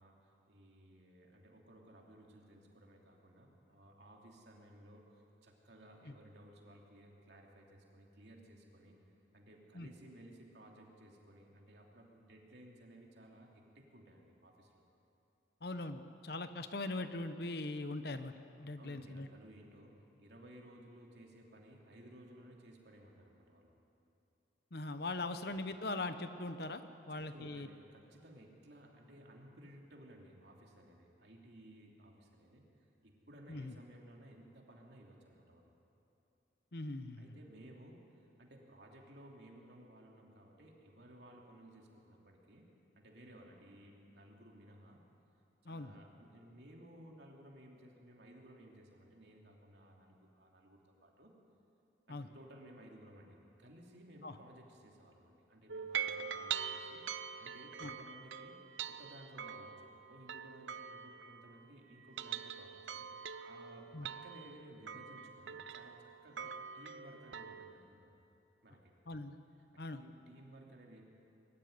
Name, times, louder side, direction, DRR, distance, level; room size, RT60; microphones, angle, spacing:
voice 1, 0.0-9.0 9.3-14.7 18.8-23.7 27.1-35.7 37.2-45.0 45.6-51.3 52.1-57.0 57.4-58.6 58.9-68.2 68.6-68.9 69.9-71.0, right 1 dB, 65° right, 0 dB, 3.0 m, -58 dB
voice 2, 15.6-18.3 18.6-19.3 24.7-26.8 27.1-27.7 33.5-33.7 36.7-37.4 45.7-45.9 52.1-52.3 54.2-54.4 57.8-57.9 63.9-64.1 69.1-69.4 69.8-70.0, left 2 dB, 55° left, 10 dB, 0.9 m, -41 dB
sound 1, 55.7-61.7 62.0-67.7, right 8 dB, 85° right, 0.8 m, -44 dB
22.5 x 13.0 x 9.7 m, 2.8 s
head